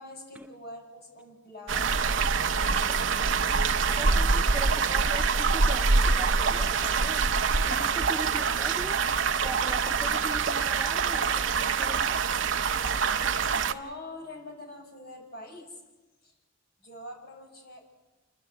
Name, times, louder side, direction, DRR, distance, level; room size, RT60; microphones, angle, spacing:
voice 1, 0.0-2.0 2.5-4.4 4.8-5.1 13.5-15.8 16.2-16.3 16.8-17.8, left 1 dB, 55° left, 2 dB, 6.8 m, -45 dB
sound 1, 1.7-13.7, right 5 dB, 75° right, 0.8 m, -25 dB
voice 2, 3.9-7.3 7.7-9.0 9.4-12.3, right 1 dB, 5° right, 6 dB, 0.6 m, -40 dB
29.0 x 13.0 x 8.2 m, 1.1 s
head